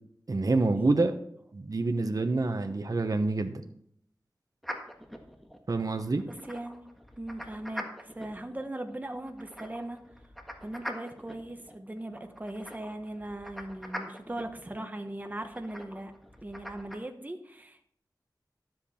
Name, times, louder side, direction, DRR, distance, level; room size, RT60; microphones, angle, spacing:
voice 1, 0.3-1.1 1.5-3.6 5.7-6.2, right 3 dB, 55° right, 7 dB, 0.9 m, -27 dB
sound 1, 4.6-17.0, equal, ahead, 1.6 m, -44 dB
voice 2, 6.3-6.9 7.2-10.0 10.6-16.1 16.4-17.8, right 1 dB, 20° right, 6 dB, 1.1 m, -39 dB
12.0 x 7.8 x 4.3 m, 0.67 s
wide cardioid pair, 55°, 7 cm